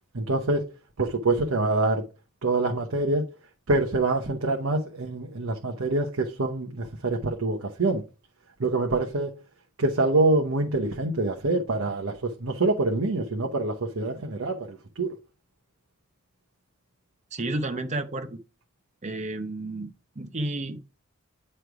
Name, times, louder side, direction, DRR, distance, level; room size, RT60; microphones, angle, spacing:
voice 1, 0.1-0.7 1.0-2.0 2.4-3.3 3.7-8.0 8.6-9.4 9.8-15.1, right 2 dB, 85° right, 0.9 m, -25 dB
voice 2, 17.3-18.4 19.0-20.8, right 2 dB, 35° right, 0.8 m, -31 dB
9.2 x 3.3 x 4.8 m
head